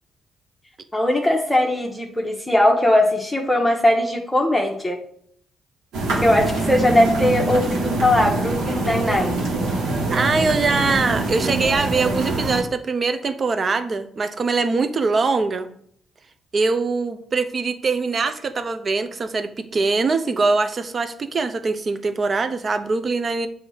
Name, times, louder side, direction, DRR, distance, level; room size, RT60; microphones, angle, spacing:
voice 1, 0.9-5.0 6.2-9.5, left 1 dB, 10° left, 0 dB, 1.0 m, -19 dB
sound 1, 5.9-12.6, right 2 dB, 90° right, 1.4 m, -24 dB
voice 2, 10.1-15.7 16.5-23.5, right 4 dB, 40° right, 9 dB, 0.7 m, -22 dB
6.8 x 2.8 x 5.6 m, 0.65 s
cardioid pair, 75°, 0 cm